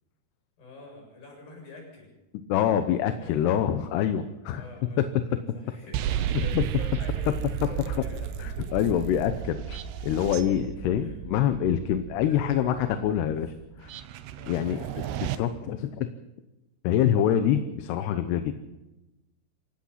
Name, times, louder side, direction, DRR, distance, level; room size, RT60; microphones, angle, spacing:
voice 1, 0.6-2.1 3.0-3.5 4.5-8.3 8.6-8.7 10.3-10.5 11.0-11.1 12.2-12.9 14.4-15.3, left 2 dB, 60° left, 1 dB, 9.1 m, -46 dB
voice 2, 2.5-4.6 5.0-5.4 6.5-6.6 8.4-13.5 13.8-13.9 14.5-14.8 15.4-16.1 16.8-18.5, left 10 dB, 80° left, 9 dB, 3.0 m, -25 dB
sound 1, 5.9-15.4, right 9 dB, 80° right, 3.0 m, -33 dB
27.5 x 16.5 x 5.8 m, 1.0 s
omnidirectional pair, 4.8 m